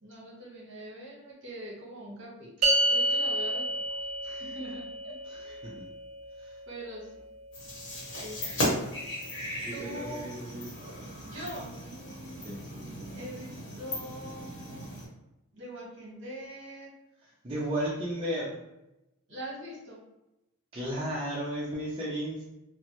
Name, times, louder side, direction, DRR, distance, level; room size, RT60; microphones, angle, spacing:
voice 1, 0.0-3.8 4.2-5.1 5.4-5.6 6.7-7.1 8.2-8.6 9.7-10.3 11.2-12.4 13.1-14.9 15.5-16.9 19.3-20.0, right 1 dB, 55° right, -4 dB, 1.0 m, -43 dB
sound 1, 2.6-9.2, right 1 dB, 75° right, 0.6 m, -32 dB
voice 2, 5.2-5.9 6.4-6.6 9.6-10.7 12.4-12.6 17.2-18.6 20.7-22.4, equal, 25° right, -6 dB, 0.4 m, -34 dB
sound 2, 7.5-15.1, equal, 55° left, 1.0 m, -36 dB
3.0 x 2.1 x 2.9 m, 0.94 s
head